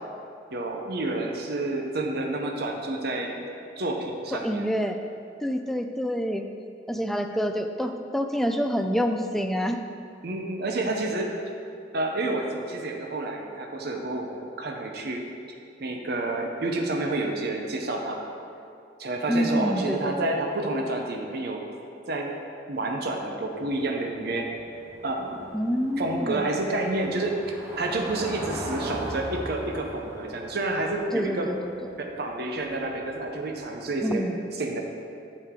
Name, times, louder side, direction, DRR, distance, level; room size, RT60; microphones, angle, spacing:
voice 1, 0.5-3.4 3.8-4.7 10.2-11.3 11.9-15.2 15.8-18.3 19.0-21.6 22.1-22.4 22.7-24.5 25.0-25.4 26.0-31.5 32.0-34.2 34.6-34.8, right 2 dB, 55° right, 2 dB, 0.7 m, -29 dB
voice 2, 4.3-5.0 5.4-6.4 6.9-9.8 19.3-20.3 25.5-26.6 31.1-31.7 34.0-34.4, equal, ahead, 5 dB, 0.3 m, -27 dB
Car passing by / Engine, 23.5-34.1, equal, 15° right, 1.0 m, -40 dB
8.7 x 6.5 x 3.7 m, 2.5 s
head